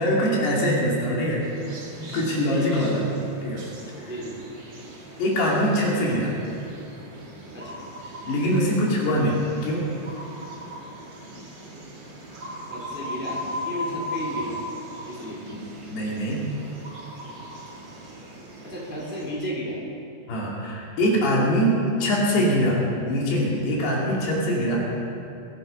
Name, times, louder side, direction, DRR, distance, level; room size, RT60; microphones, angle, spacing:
voice 1, 0.0-1.5 2.0-3.0 3.4-3.6 4.0-4.1 5.2-6.3 8.3-9.8 15.5-15.6 15.9-16.5 20.3-24.9, equal, 70° left, -3 dB, 4.7 m, -23 dB
sound 1, 1.4-19.3, left 1 dB, 35° right, 2.4 m, -39 dB
voice 2, 2.5-2.9 4.0-4.4 7.5-7.8 12.6-14.6 15.1-15.4 18.6-19.8, equal, 5° right, -5 dB, 2.9 m, -33 dB
21.5 x 11.0 x 5.6 m, 2.7 s
omnidirectional pair, 5.0 m